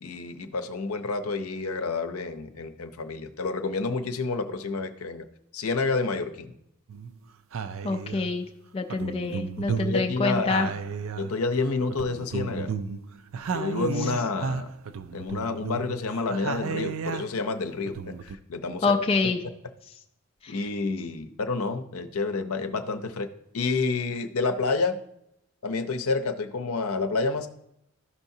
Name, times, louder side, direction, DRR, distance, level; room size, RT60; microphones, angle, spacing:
voice 1, 0.0-5.3 5.5-6.5 9.7-10.7 11.2-12.7 13.5-14.7 15.1-19.0 20.5-23.3 23.5-25.0 25.6-27.5, left 3 dB, 75° left, 7 dB, 0.6 m, -29 dB
sound 1, 6.9-7.1 7.5-8.4 8.9-11.6 11.9-17.5 17.9-18.4, right 5 dB, 65° right, 0.4 m, -33 dB
voice 2, 7.8-8.5 8.7-10.7 18.8-19.4 20.4-20.6, left 3 dB, 25° left, 4 dB, 0.3 m, -26 dB
13.0 x 5.7 x 2.7 m, 0.79 s
head